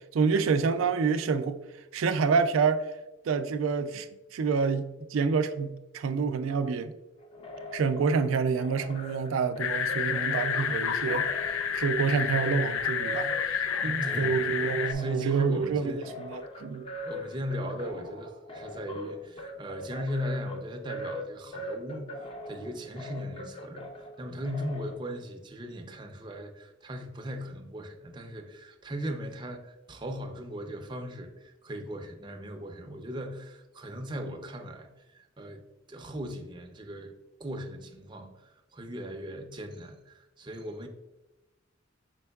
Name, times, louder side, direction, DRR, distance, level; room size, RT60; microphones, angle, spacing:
voice 1, 0.1-1.6 1.9-2.8 3.3-4.1 4.3-6.9 7.7-16.9, right 5 dB, 90° right, 0.4 m, -28 dB
sound 1, 7.2-24.9, left 1 dB, 30° left, 0.6 m, -42 dB
sound 2, 9.6-14.9, left 7 dB, 85° left, 0.4 m, -30 dB
voice 2, 13.8-14.6 14.9-16.1 17.0-34.9 35.1-35.6 35.9-37.1 37.4-40.9, equal, 25° right, 0.5 m, -38 dB
5.3 x 4.4 x 2.3 m
head